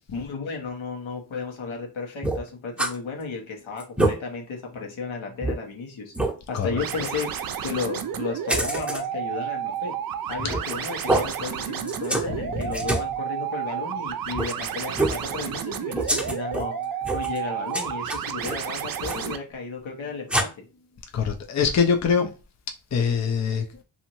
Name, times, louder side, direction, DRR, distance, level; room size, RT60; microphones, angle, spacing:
voice 1, 0.1-6.1 6.5-7.3 7.6-9.9 10.3-16.7 17.1-20.5, left 4 dB, 75° left, 1.1 m, -34 dB
sound 1, 2.2-2.9 3.3-3.4 3.8-4.1 4.7-4.8 5.4-5.5 6.1-6.3 8.5-9.0 10.4-10.7 11.1-11.3 11.9-12.3 12.5-13.1 14.3-14.5 14.9-15.2 15.9-16.7 17.0-17.4 17.7-18.6 19.0-19.3 20.3-20.4, right 1 dB, 5° right, 0.8 m, -25 dB
sound 2, 6.8-19.4, right 8 dB, 50° right, 0.5 m, -31 dB
voice 2, 21.1-22.3 22.9-23.6, left 6 dB, 35° left, 0.6 m, -22 dB
2.7 x 2.6 x 3.0 m
cardioid pair, 55°, 48 cm